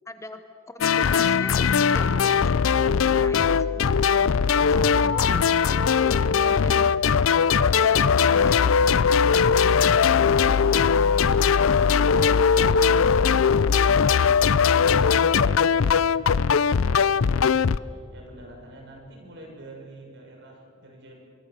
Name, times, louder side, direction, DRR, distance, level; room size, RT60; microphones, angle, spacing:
voice 1, 0.1-2.6 3.0-4.3 4.7-5.6 6.1-7.2 7.6-9.2, left 1 dB, 15° left, 8 dB, 1.0 m, -41 dB
sound 1, 0.8-17.8, left 6 dB, 75° left, 0.5 m, -20 dB
voice 2, 6.3-6.6 9.9-12.4 12.9-13.6 13.9-21.2, right 1 dB, 60° right, 0 dB, 6.7 m, -46 dB
24.5 x 23.0 x 6.8 m, 2.4 s
head